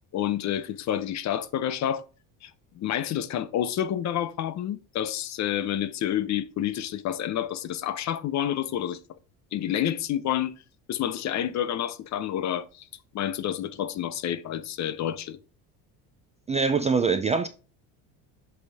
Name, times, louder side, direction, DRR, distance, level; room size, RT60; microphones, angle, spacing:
voice 1, 0.1-2.0 2.4-2.5 2.8-9.0 9.5-10.5 10.9-12.9 13.1-15.4, left 10 dB, 45° left, 0.6 m, -29 dB
voice 2, 16.5-17.5, right 5 dB, 20° right, 0.3 m, -23 dB
7.9 x 3.4 x 3.5 m
cardioid pair, 110°, 40 cm